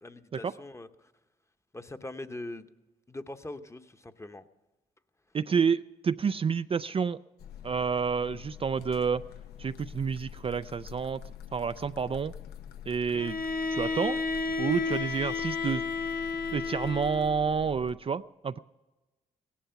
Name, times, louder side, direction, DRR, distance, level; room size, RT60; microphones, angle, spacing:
voice 1, 0.0-1.1 1.7-2.7 3.1-4.4, left 2 dB, 15° left, 9 dB, 1.0 m, -42 dB
voice 2, 5.3-7.2 7.6-9.2 9.6-11.2 11.5-12.3 12.9-13.4 13.7-14.2 14.6-15.8 16.5-18.6, right 6 dB, 35° right, 12 dB, 0.4 m, -29 dB
sound 1, 7.4-17.9, left 10 dB, 80° left, 0.7 m, -46 dB
Bowed string instrument, 13.1-17.4, left 4 dB, 65° left, 1.2 m, -32 dB
17.0 x 11.5 x 5.8 m, 1.1 s
supercardioid pair, 55°, 16 cm